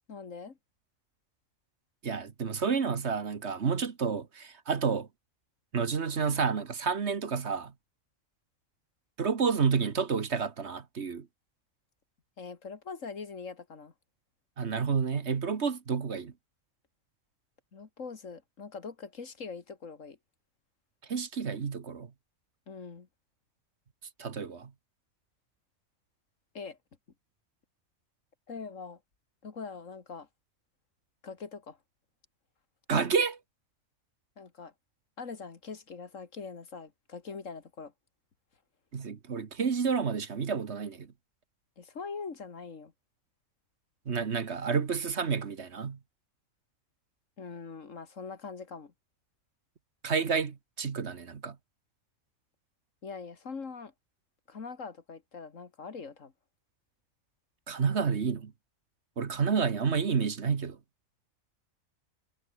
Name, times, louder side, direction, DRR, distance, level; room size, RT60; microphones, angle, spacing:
voice 1, 0.1-0.6 12.4-13.9 17.7-20.2 22.7-23.1 26.5-26.8 28.5-29.0 29.4-30.3 31.2-31.8 34.4-34.7 35.2-37.9 41.8-42.9 47.4-48.9 53.0-53.9 54.5-56.3, left 5 dB, 65° left, 2.3 m, -42 dB
voice 2, 2.0-5.1 5.7-7.7 9.2-11.3 14.6-16.3 21.1-22.1 24.2-24.7 32.9-33.4 38.9-41.1 44.1-46.0 50.0-51.6 57.7-58.5 59.2-60.8, right 5 dB, 55° right, 1.6 m, -30 dB
omnidirectional pair, 1.4 m